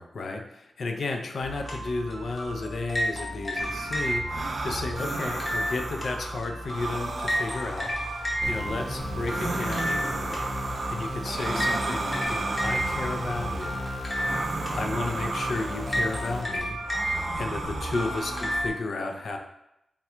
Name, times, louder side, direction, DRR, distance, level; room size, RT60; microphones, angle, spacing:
voice 1, 0.0-13.9 14.7-16.8 17.0-19.4, left 3 dB, 60° left, 4 dB, 0.4 m, -33 dB
sound 1, 1.4-18.7, equal, 20° left, 0.8 m, -32 dB
sound 2, 3.6-18.6, right 3 dB, 45° right, 0.3 m, -34 dB
sound 3, 8.4-16.4, left 1 dB, 15° right, 0.7 m, -37 dB
3.6 x 2.2 x 4.3 m, 0.85 s
wide cardioid pair, 155°, 0 cm